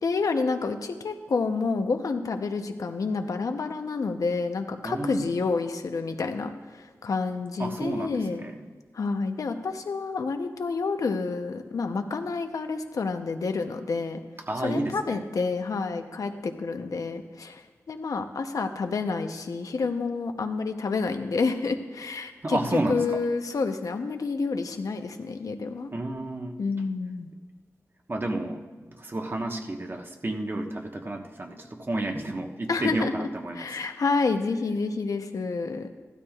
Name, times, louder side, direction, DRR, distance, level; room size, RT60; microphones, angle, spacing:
voice 1, 0.0-8.4 8.9-14.2 14.6-17.6 17.9-25.9 26.6-27.3 32.7-33.3 33.5-35.9, left 4 dB, 80° left, 6 dB, 0.8 m, -29 dB
voice 2, 4.8-5.3 7.6-8.5 14.5-15.2 22.4-23.0 25.9-26.6 28.1-33.7, right 1 dB, 40° right, 3 dB, 1.2 m, -31 dB
15.5 x 12.5 x 2.4 m, 1.4 s
cardioid pair, 50°, 6 cm